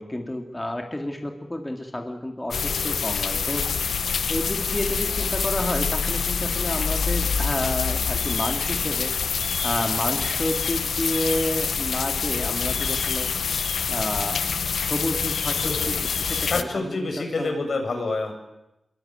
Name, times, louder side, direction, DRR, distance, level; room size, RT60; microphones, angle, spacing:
voice 1, 0.0-3.6 4.3-9.1 9.6-13.3 13.9-14.4 14.8-17.6, left 1 dB, 15° left, 3 dB, 3.2 m, -30 dB
sound 1, 2.5-16.6, left 6 dB, 85° left, 1.2 m, -26 dB
voice 2, 16.4-18.3, left 3 dB, 65° left, 4 dB, 7.6 m, -28 dB
26.5 x 23.5 x 9.3 m, 0.89 s
wide cardioid pair, 85°, 0 cm